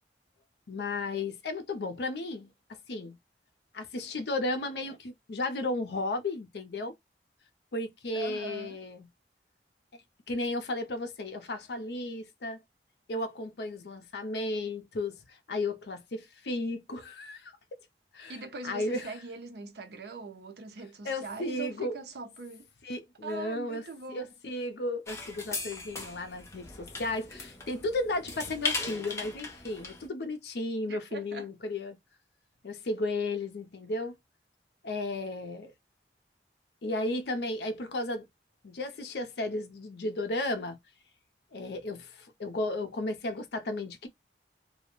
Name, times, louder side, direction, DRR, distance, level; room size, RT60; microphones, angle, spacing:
voice 1, 0.7-3.2 3.7-6.9 7.7-9.1 9.9-10.0 10.3-12.6 13.1-17.5 18.1-18.3 18.6-19.1 21.0-22.0 22.8-32.0 32.6-34.2 34.8-35.7 36.8-38.3 38.6-40.8 41.5-44.1, left 2 dB, 65° left, 0.5 m, -34 dB
voice 2, 8.1-8.8 18.3-22.7 23.2-24.2 30.9-31.5, right 3 dB, 65° right, 0.6 m, -42 dB
sound 1, 25.1-30.1, left 3 dB, 15° left, 0.5 m, -38 dB
2.2 x 2.1 x 2.9 m
head